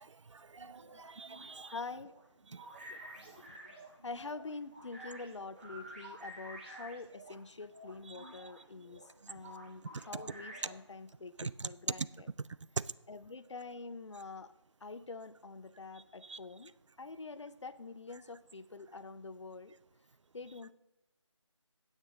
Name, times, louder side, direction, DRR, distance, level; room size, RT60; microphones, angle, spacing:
voice 1, 0.0-1.8 2.5-3.1 8.1-8.4 9.9-10.2 11.4-11.7 12.4-12.5 16.2-16.4, right 4 dB, 70° right, 0.4 m, -46 dB
sound 1, 0.6-7.4 7.7-10.9, right 1 dB, 20° right, 1.5 m, -51 dB
voice 2, 1.7-2.1 3.2-12.3 13.1-14.5 14.8-16.7 17.0-19.7 20.3-20.7, left 3 dB, 70° left, 0.6 m, -46 dB
9.8 x 8.1 x 3.8 m
figure-of-eight pair, 170°, 16 cm